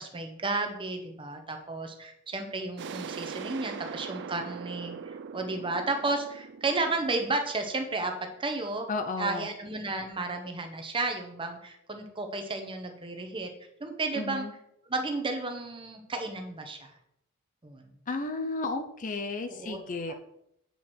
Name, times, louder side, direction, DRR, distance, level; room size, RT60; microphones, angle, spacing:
voice 1, 0.0-8.1 8.4-8.9 9.2-13.5 13.8-14.5 14.9-16.9 17.6-17.9 19.5-19.8 20.1-20.2, right 3 dB, 25° right, 5 dB, 0.9 m, -33 dB
sound 1, 2.8-8.3, right 6 dB, 55° right, 0.4 m, -41 dB
voice 2, 8.9-9.5 14.1-14.5 18.1-20.1, left 3 dB, 35° left, 7 dB, 0.6 m, -33 dB
8.1 x 4.7 x 4.4 m, 0.77 s
head